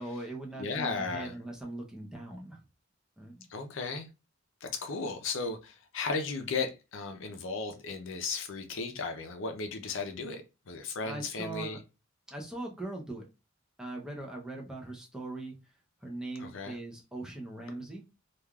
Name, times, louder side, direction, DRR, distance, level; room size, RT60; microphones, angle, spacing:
voice 1, 0.0-2.6 3.2-3.4 11.0-11.8 12.3-13.3 13.8-15.6 16.0-18.0, right 2 dB, 5° right, 0.6 m, -40 dB
voice 2, 0.6-1.3 3.5-4.1 4.6-11.8 16.4-16.8, left 4 dB, 65° left, 0.5 m, -35 dB
3.3 x 2.4 x 2.3 m
head